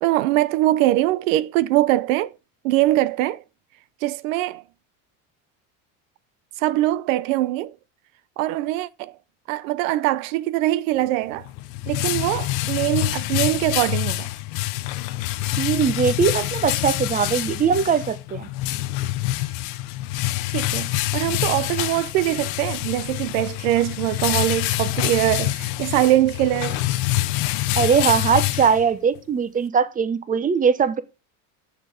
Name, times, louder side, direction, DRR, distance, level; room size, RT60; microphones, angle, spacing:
voice 1, 0.0-2.3 2.6-3.4 4.0-4.6 6.6-7.7 8.4-9.1 9.5-11.5 11.9-14.3 20.5-20.9 21.1-26.8, right 15 dB, 90° right, 0.6 m, -22 dB
sound 1, 11.3-29.2, left 17 dB, 65° left, 0.7 m, -26 dB
voice 2, 15.6-18.5 27.7-31.0, right 6 dB, 20° right, 0.8 m, -20 dB
6.7 x 5.8 x 4.8 m
supercardioid pair, 125°, 38 cm